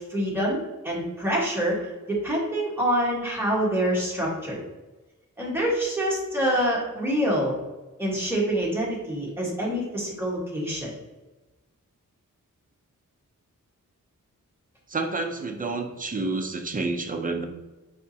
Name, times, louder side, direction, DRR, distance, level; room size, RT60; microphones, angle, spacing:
voice 1, 0.1-1.8 2.1-4.6 5.4-7.5 8.0-10.9, equal, 5° right, -5 dB, 1.3 m, -26 dB
voice 2, 14.9-17.4, right 3 dB, 25° right, 4 dB, 0.5 m, -29 dB
4.9 x 3.4 x 2.7 m, 1.1 s
wide cardioid pair, 115°, 32 cm